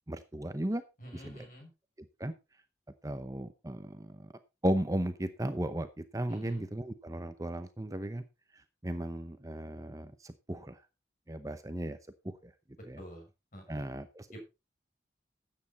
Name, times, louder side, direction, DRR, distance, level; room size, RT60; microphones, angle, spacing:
voice 1, 0.1-0.8 1.1-1.5 2.0-2.3 3.0-4.3 4.6-8.2 8.5-10.8 11.3-12.0 12.2-12.5 12.8-13.0 13.7-14.4, right 1 dB, 20° right, 0.8 m, -36 dB
voice 2, 1.0-1.7 6.3-6.6 13.0-13.8 14.3-14.4, equal, 50° left, 6.7 m, -48 dB
13.0 x 8.8 x 4.2 m
head